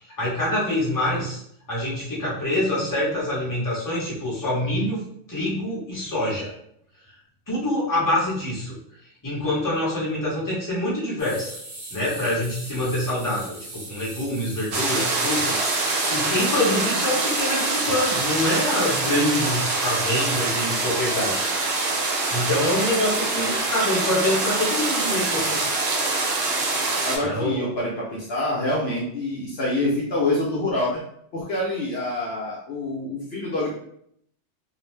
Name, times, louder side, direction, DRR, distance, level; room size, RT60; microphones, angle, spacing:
voice 1, 0.2-1.4 1.7-5.0 5.3-6.5 7.5-8.8 9.2-11.5 11.9-21.5 22.3-25.6 27.2-27.6, left 1 dB, 20° left, -7 dB, 0.8 m, -25 dB
sound 1, 11.2-23.2, right 2 dB, 35° right, 0.5 m, -41 dB
sound 2, 14.7-27.2, right 3 dB, 65° right, 0.8 m, -24 dB
voice 2, 27.0-31.0 31.3-33.7, left 1 dB, 65° left, -5 dB, 0.8 m, -26 dB
2.5 x 2.0 x 3.1 m, 0.70 s
omnidirectional pair, 1.3 m